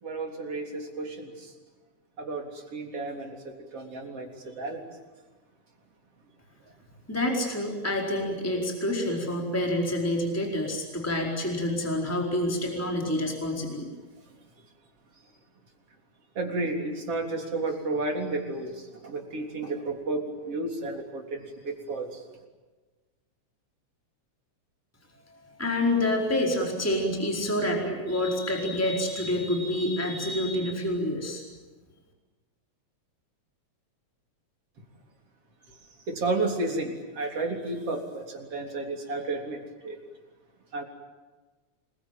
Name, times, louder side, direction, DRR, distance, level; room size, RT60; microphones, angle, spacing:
voice 1, 0.0-1.5 2.2-4.8 16.4-22.2 36.1-40.0 40.7-40.8, right 2 dB, 55° right, 2 dB, 4.6 m, -32 dB
voice 2, 7.1-13.9 25.6-31.4, left 1 dB, 5° left, 0 dB, 4.4 m, -27 dB
27.5 x 22.0 x 9.1 m, 1.3 s
omnidirectional pair, 3.3 m